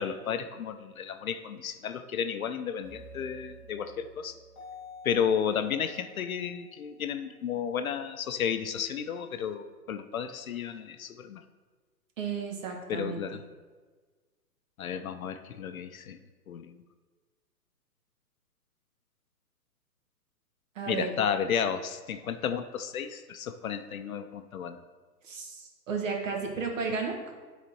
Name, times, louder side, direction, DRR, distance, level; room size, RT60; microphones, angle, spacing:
voice 1, 0.0-4.4 5.0-11.4 12.9-13.4 14.8-16.2 16.5-16.7 20.9-24.8, left 7 dB, 60° left, 9 dB, 0.6 m, -32 dB
sound 1, 2.8-7.5, left 2 dB, 10° left, 0.6 m, -50 dB
voice 2, 12.2-13.2 20.7-21.1 25.2-27.3, right 5 dB, 50° right, 2 dB, 1.6 m, -33 dB
10.0 x 4.1 x 4.5 m, 1.4 s
hypercardioid pair, 155°, 49 cm